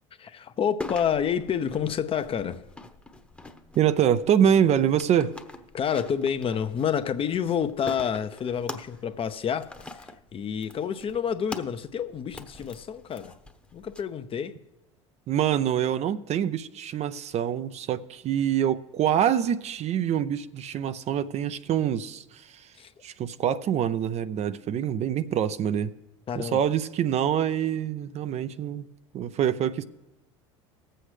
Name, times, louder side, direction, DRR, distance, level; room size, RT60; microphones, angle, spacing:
voice 1, 0.2-2.6 5.7-13.3 13.7-14.6 22.8-22.9 26.3-26.6, left 8 dB, 35° left, 0.8 m, -29 dB
sound 1, 0.8-14.0, left 2 dB, 5° left, 1.0 m, -44 dB
voice 2, 3.8-5.3 15.3-22.7 23.0-25.9 26.4-28.8 29.1-29.8, right 9 dB, 45° right, 0.6 m, -25 dB
20.0 x 7.8 x 3.3 m
hypercardioid pair, 75°, 16 cm